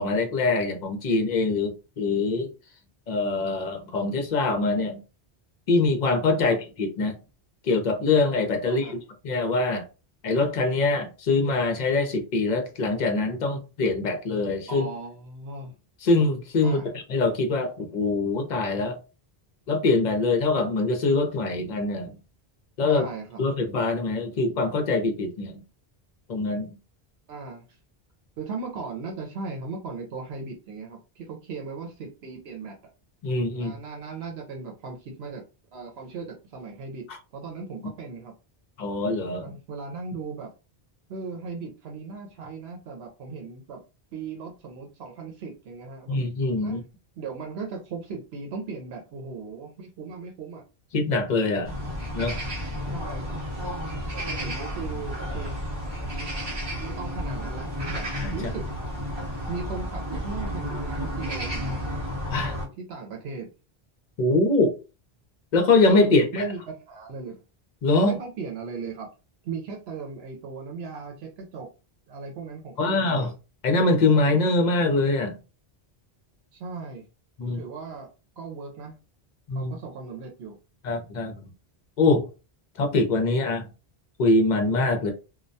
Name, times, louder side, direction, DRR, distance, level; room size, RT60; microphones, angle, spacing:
voice 1, 0.0-2.5 3.1-5.0 5.7-7.2 7.6-9.0 9.2-9.8 10.2-14.9 16.0-19.0 19.7-22.2 22.8-23.1 23.4-25.6 26.3-26.8 33.2-33.7 37.1-37.2 38.8-39.5 46.1-46.8 50.9-51.7 52.1-52.4 58.1-58.3 62.3-62.5 64.2-64.8 65.5-66.4 67.8-68.2 72.8-73.3 73.6-75.4 77.4-77.6 79.5-79.7 80.8-81.4 82.0-82.3 82.8-83.7 84.2-85.1, left 3 dB, 50° left, 0.7 m, -23 dB
voice 2, 14.7-15.7 16.6-16.9 22.9-23.4 27.3-27.8 28.4-32.8 33.5-35.4 35.7-37.0 37.3-38.3 39.4-40.5 41.1-43.8 44.1-46.2 46.6-46.8 47.2-50.6 52.8-53.4 54.1-55.6 56.0-56.5 56.8-58.7 59.5-61.9 62.8-63.5 66.0-67.4 68.0-69.1 69.4-71.7 72.1-73.3 76.5-77.0 77.4-78.1 78.4-79.0 79.5-80.6, right 4 dB, 85° right, 0.8 m, -37 dB
sound 1, 51.6-62.7, equal, 25° right, 0.8 m, -32 dB
2.2 x 2.1 x 2.5 m
omnidirectional pair, 1.0 m